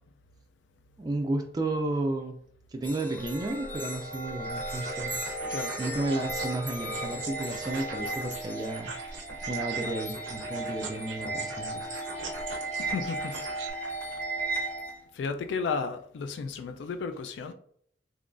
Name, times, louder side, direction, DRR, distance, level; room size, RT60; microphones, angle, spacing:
voice 1, 1.0-2.4 2.7-5.2 5.8-8.9 9.5-11.9, right 2 dB, 20° right, 0.3 m, -32 dB
sound 1, 2.8-14.9, right 2 dB, 10° left, 0.7 m, -35 dB
sound 2, 4.6-13.7, right 4 dB, 90° right, 0.6 m, -42 dB
voice 2, 12.8-13.4 14.4-14.6 15.1-17.5, left 5 dB, 75° left, 0.3 m, -33 dB
3.7 x 3.0 x 2.4 m
head